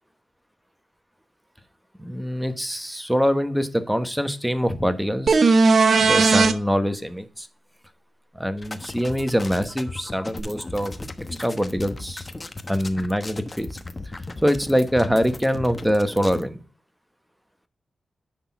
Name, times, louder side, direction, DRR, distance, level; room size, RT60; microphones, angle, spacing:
voice 1, 2.0-5.4 6.0-7.5 8.3-11.0 11.4-12.3 12.7-13.7 14.4-16.6, equal, 5° right, 10 dB, 1.2 m, -24 dB
sound 1, 5.3-6.5 10.4-10.5, right 4 dB, 60° right, 0.8 m, -16 dB
sound 2, 8.6-16.5, left 2 dB, 30° left, 1.0 m, -36 dB
10.0 x 3.7 x 6.0 m, 0.38 s
cardioid pair, 50°, 0 cm